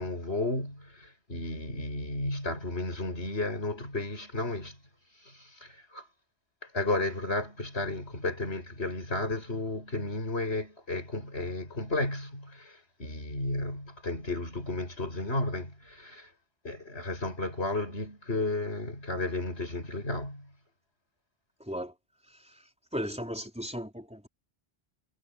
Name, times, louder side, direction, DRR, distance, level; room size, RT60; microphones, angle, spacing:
voice 1, 0.0-4.8 5.1-6.1 6.6-16.3 16.6-20.5, left 2 dB, 85° left, 8.5 m, -33 dB
voice 2, 21.6-21.9 22.4-22.5 22.9-24.3, equal, 5° right, 4.5 m, -36 dB
omnidirectional pair, 1.1 m